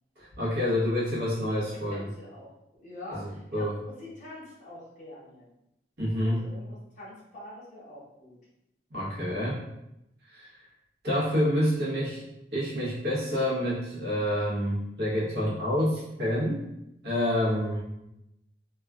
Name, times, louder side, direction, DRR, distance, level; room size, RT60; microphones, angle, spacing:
voice 1, 0.2-2.1 3.1-3.8 6.0-6.4 8.9-9.6 10.3-10.6 11.0-12.2 12.5-16.6 17.0-17.8, equal, 65° right, -8 dB, 1.1 m, -28 dB
voice 2, 1.5-2.5 2.8-5.5 6.2-8.4, left 1 dB, 45° left, -8 dB, 0.9 m, -45 dB
3.0 x 2.4 x 2.3 m, 0.86 s
head